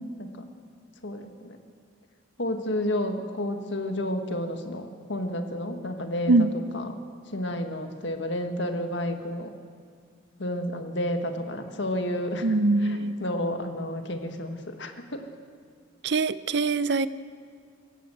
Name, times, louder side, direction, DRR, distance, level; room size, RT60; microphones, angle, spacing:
voice 1, 1.0-1.6 2.4-6.5 6.7-7.0 7.3-9.5 10.4-15.2, left 1 dB, 65° left, 6 dB, 1.8 m, -31 dB
voice 2, 12.4-13.1 16.0-17.1, right 3 dB, 55° right, 15 dB, 0.6 m, -23 dB
25.0 x 15.5 x 8.0 m, 2.1 s
head